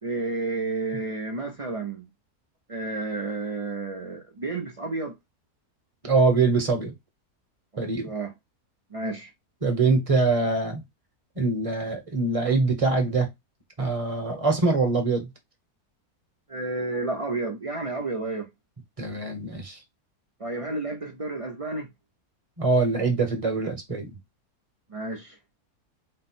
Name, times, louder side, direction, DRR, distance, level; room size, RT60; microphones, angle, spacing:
voice 1, 0.0-2.1 2.7-5.1 7.7-8.3 8.9-9.3 16.5-18.5 20.4-21.9 24.9-25.4, right 3 dB, 45° right, 0.4 m, -31 dB
voice 2, 6.0-6.9 7.8-8.1 9.6-10.8 11.4-13.3 13.8-15.3 19.0-19.8 22.6-24.1, right 3 dB, 25° right, 0.9 m, -23 dB
4.3 x 2.1 x 4.2 m
omnidirectional pair, 1.6 m